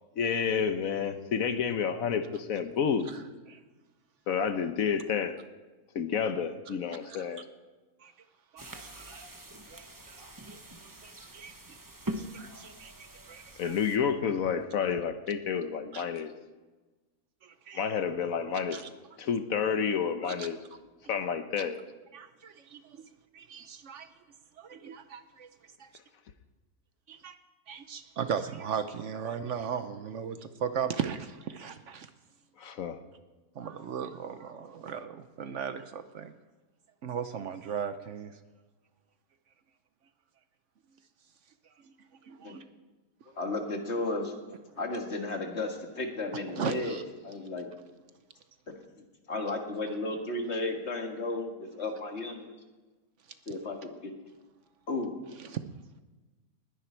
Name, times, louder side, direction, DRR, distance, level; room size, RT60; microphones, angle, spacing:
voice 1, 0.2-3.1 4.3-5.4 5.9-7.5 13.6-16.3 17.7-18.8 19.2-20.6 21.1-21.8 32.6-33.0, left 7 dB, 70° left, 9 dB, 1.2 m, -30 dB
voice 2, 8.5-9.2 9.7-11.8 12.1-12.9 13.3-13.7 15.9-16.1 17.4-17.8 18.7-18.9 20.2-20.5 21.6-21.7 22.1-22.8 23.3-24.1 24.6-25.5 25.8-25.9 27.1-27.3 27.7-32.1 33.6-36.3 37.0-38.3 42.3-42.6 46.6-47.0, right 7 dB, 60° right, 10 dB, 0.9 m, -37 dB
sound 1, 8.6-14.0, right 1 dB, 15° right, 0.8 m, -43 dB
voice 3, 43.4-44.3 44.8-47.7 49.0-52.5 53.5-54.1 54.9-55.2, left 2 dB, 50° left, 3 dB, 1.9 m, -34 dB
20.0 x 10.0 x 4.5 m, 1.2 s
omnidirectional pair, 1.5 m